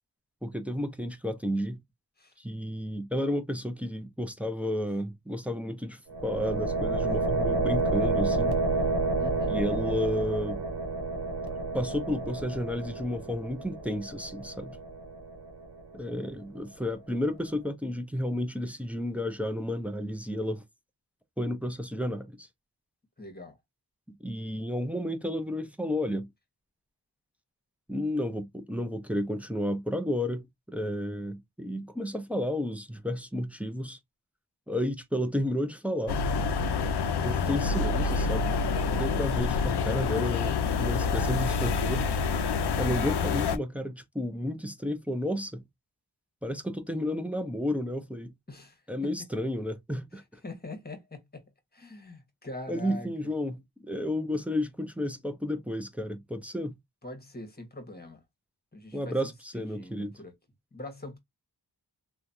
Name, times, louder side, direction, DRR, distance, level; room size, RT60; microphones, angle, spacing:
voice 1, 0.4-1.8 2.4-8.6 9.5-10.6 11.7-14.8 15.9-20.6 21.4-22.5 24.1-26.3 27.9-34.0 34.7-36.2 37.2-38.5 38.9-42.2 42.8-45.6 46.4-48.3 48.9-50.2 52.7-56.8 58.9-60.2, left 1 dB, 5° right, 0.6 m, -32 dB
sound 1, 6.1-16.0, right 3 dB, 75° right, 0.9 m, -30 dB
voice 2, 9.2-9.6 23.2-23.6 48.5-49.1 50.1-53.1 57.0-58.2 58.7-59.2 59.5-60.3 60.7-61.2, left 2 dB, 25° left, 1.3 m, -43 dB
sound 2, 36.1-43.6, left 5 dB, 80° left, 0.5 m, -27 dB
3.1 x 2.3 x 2.6 m
wide cardioid pair, 75°, 39 cm